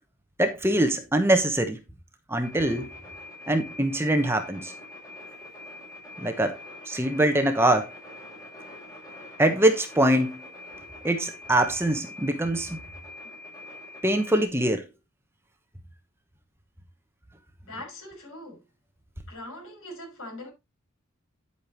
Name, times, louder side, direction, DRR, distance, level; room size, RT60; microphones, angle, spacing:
voice 1, 0.4-1.8 2.3-2.9 3.5-4.7 6.2-6.6 6.9-7.9 9.4-10.4 11.0-12.8 14.0-14.8, right 1 dB, 10° right, 1.0 m, -23 dB
sound 1, 2.4-14.5, left 2 dB, 15° left, 6.4 m, -44 dB
voice 2, 17.6-18.6 19.3-20.5, left 1 dB, 75° left, 5.8 m, -41 dB
10.0 x 8.4 x 3.0 m
head